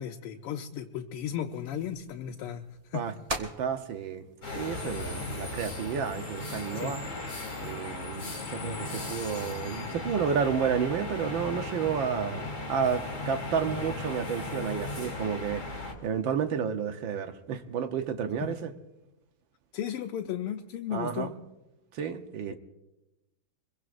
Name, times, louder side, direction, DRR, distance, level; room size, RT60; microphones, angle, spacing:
voice 1, 0.0-2.6 2.9-3.0 6.7-7.0 18.4-18.6 19.7-21.3 22.5-22.6, left 10 dB, 90° left, 3 dB, 1.7 m, -35 dB
sound 1, 1.2-7.4, right 1 dB, 25° right, 0.8 m, -44 dB
voice 2, 3.4-4.2 4.5-7.0 7.6-18.7 20.9-21.3 21.9-22.6, right 7 dB, 65° right, 7 dB, 1.6 m, -31 dB
sound 2, 4.4-15.9, left 3 dB, 40° left, 3.4 m, -36 dB
26.0 x 22.0 x 2.6 m, 0.99 s
omnidirectional pair, 2.4 m